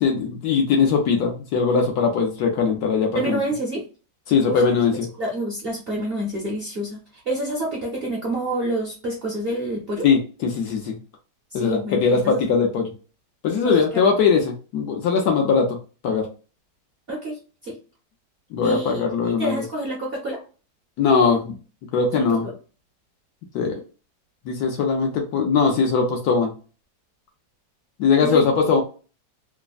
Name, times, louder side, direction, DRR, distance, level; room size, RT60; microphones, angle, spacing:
voice 1, 0.0-3.4 4.3-5.1 10.0-11.0 11.5-12.9 13.4-15.8 16.0-16.2 18.5-19.6 21.0-21.5 21.9-22.5 23.5-23.7 24.5-26.5 28.0-28.8, left 5 dB, 70° left, 2 dB, 1.0 m, -20 dB
voice 2, 3.1-3.8 4.4-4.6 5.2-10.1 11.5-12.5 13.6-14.1 17.1-17.8 18.6-19.0 19.4-20.4 21.2-21.4 22.1-22.6 28.2-28.4, right 1 dB, 50° right, -3 dB, 0.7 m, -28 dB
3.2 x 2.0 x 2.3 m, 0.35 s
omnidirectional pair, 1.9 m